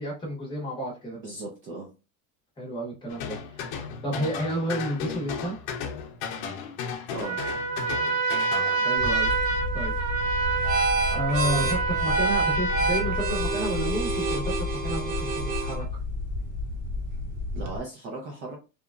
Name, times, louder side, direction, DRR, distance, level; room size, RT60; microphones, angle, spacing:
voice 1, 0.0-1.2 2.6-5.6 8.7-9.4 9.7-9.9 10.2-16.0, right 1 dB, 10° left, -3 dB, 0.8 m, -31 dB
voice 2, 1.1-1.9 7.1-7.4 17.5-18.6, right 2 dB, 30° right, -1 dB, 0.4 m, -37 dB
sound 1, 3.1-8.8, left 6 dB, 80° left, 0.6 m, -35 dB
Trumpet, 7.2-13.7, right 4 dB, 90° right, 1.2 m, -27 dB
sound 2, 9.0-17.8, right 1 dB, 65° right, 0.9 m, -28 dB
2.9 x 2.3 x 2.3 m, 0.30 s
cardioid pair, 165°, 40 cm